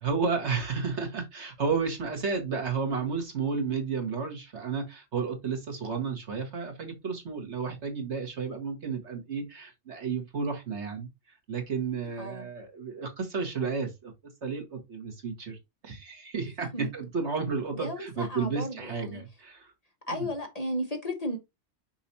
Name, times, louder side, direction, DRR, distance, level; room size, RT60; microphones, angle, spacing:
voice 1, 0.0-14.1 14.4-15.6 15.8-19.7 20.1-20.3, right 5 dB, 75° right, 2.0 m, -32 dB
voice 2, 12.2-12.5 16.7-16.9 17.7-19.2 20.1-21.4, equal, 35° left, 1.4 m, -34 dB
6.0 x 5.9 x 2.8 m
omnidirectional pair, 1.2 m